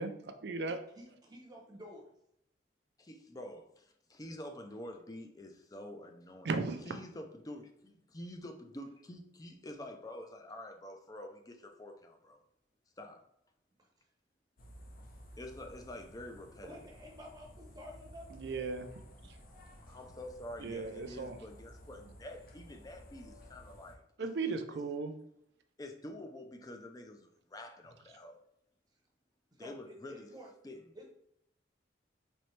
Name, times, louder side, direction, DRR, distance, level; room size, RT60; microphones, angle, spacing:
voice 1, 0.0-0.8 6.4-6.9 18.3-18.9 20.6-21.4 24.2-25.1, right 4 dB, 65° right, 8 dB, 0.5 m, -36 dB
voice 2, 0.9-2.1 13.8-13.9 16.6-18.7 29.5-30.5 30.9-31.1, equal, 20° right, 0 dB, 0.8 m, -51 dB
voice 3, 3.0-6.5 6.8-12.4 13.0-13.2 15.4-16.8 19.2-19.3 19.9-24.8 25.8-28.4 29.6-30.3 30.6-30.8, left 1 dB, 20° left, 4 dB, 0.4 m, -47 dB
sound 1, 14.6-23.9, equal, 50° left, 0.7 m, -54 dB
4.3 x 3.1 x 3.2 m, 0.76 s
head